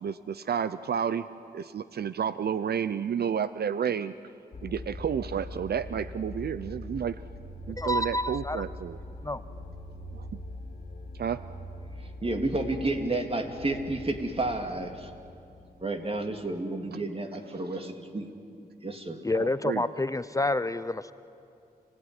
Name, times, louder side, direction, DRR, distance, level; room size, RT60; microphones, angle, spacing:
voice 1, 0.0-1.2 1.5-4.1 4.6-7.2 7.7-9.0 10.1-10.3 11.2-11.4 19.3-19.8, right 8 dB, 75° right, 14 dB, 0.6 m, -31 dB
sound 1, 4.5-16.5, left 1 dB, 55° left, 2.4 m, -42 dB
voice 2, 7.8-8.6 9.2-9.4 19.2-21.1, left 2 dB, 20° left, 13 dB, 0.6 m, -28 dB
voice 3, 12.2-15.1 15.8-18.3 18.8-19.2, right 2 dB, 35° right, 5 dB, 2.7 m, -31 dB
29.0 x 17.0 x 9.8 m, 2.6 s
cardioid pair, 70°, 17 cm